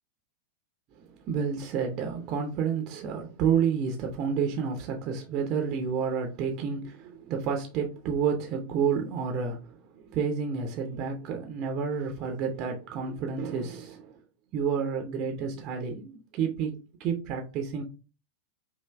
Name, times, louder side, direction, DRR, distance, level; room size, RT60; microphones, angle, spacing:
voice 1, 1.1-14.2 14.5-16.7 17.0-17.8, right 6 dB, 40° right, 3 dB, 0.8 m, -30 dB
5.6 x 2.6 x 3.3 m, 0.32 s
figure-of-eight pair, 90°, 0 cm